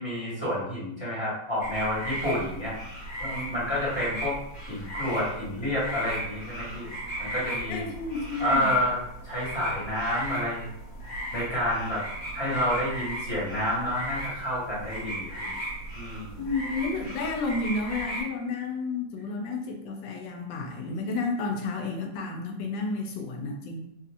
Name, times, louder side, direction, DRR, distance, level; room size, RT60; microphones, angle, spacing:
voice 1, 0.0-2.7 3.2-4.3 4.7-6.9 7.2-7.8 8.4-9.0 9.2-10.6 11.3-12.0 12.3-15.5 15.9-16.4, left 1 dB, 15° left, -9 dB, 1.3 m, -29 dB
sound 1, 1.6-18.2, right 1 dB, 65° left, 1.6 m, -37 dB
voice 2, 7.7-8.7 16.4-23.8, left 3 dB, 80° left, 3 dB, 1.3 m, -31 dB
3.0 x 2.7 x 2.5 m, 0.73 s
omnidirectional pair, 2.0 m